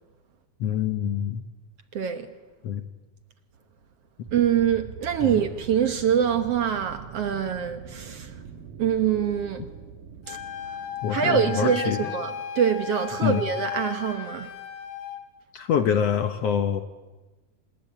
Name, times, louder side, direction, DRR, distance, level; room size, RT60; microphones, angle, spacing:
voice 1, 0.6-1.5 2.6-2.8 5.2-5.4 11.0-12.0 13.2-13.4 15.5-16.8, left 8 dB, 65° left, 1.7 m, -25 dB
voice 2, 1.9-2.3 4.3-8.3 8.8-9.7 10.3-10.4 11.1-14.5, right 8 dB, 60° right, 1.8 m, -25 dB
sound 1, 4.3-12.0, right 6 dB, 90° right, 3.2 m, -43 dB
Wind instrument woodwind instrument, 10.3-15.2, left 9 dB, 85° left, 3.9 m, -35 dB
26.5 x 20.5 x 9.0 m
omnidirectional pair, 3.7 m